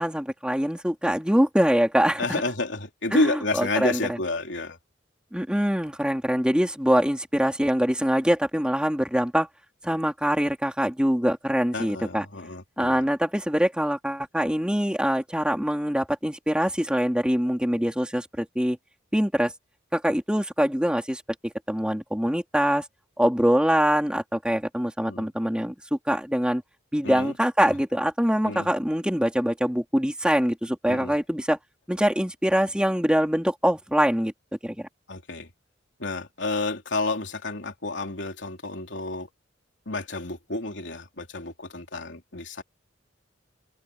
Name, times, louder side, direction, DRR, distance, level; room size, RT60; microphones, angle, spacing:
voice 1, 0.0-2.4 3.1-3.2 3.6-4.0 5.3-9.5 9.8-12.2 12.8-18.8 19.1-19.5 19.9-22.8 23.2-26.6 26.9-31.6 31.9-34.3 34.6-34.9, equal, 5° right, 3.3 m, -24 dB
voice 2, 2.2-4.8 11.7-13.0 25.1-25.3 27.0-27.4 28.4-28.7 30.9-31.1 35.1-35.5 36.0-39.3 39.9-42.6, left 2 dB, 65° left, 3.5 m, -30 dB
head